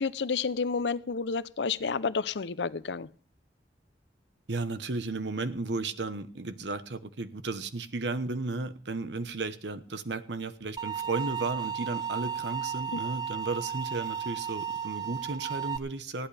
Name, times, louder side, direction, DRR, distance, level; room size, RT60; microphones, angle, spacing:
voice 1, 0.0-3.1 12.9-13.0, left 5 dB, 75° left, 16 dB, 0.6 m, -30 dB
voice 2, 4.5-16.3, right 3 dB, 80° right, 12 dB, 1.1 m, -34 dB
sound 1, 10.8-15.8, right 8 dB, 25° right, 0.6 m, -34 dB
20.0 x 14.5 x 3.4 m, 0.43 s
head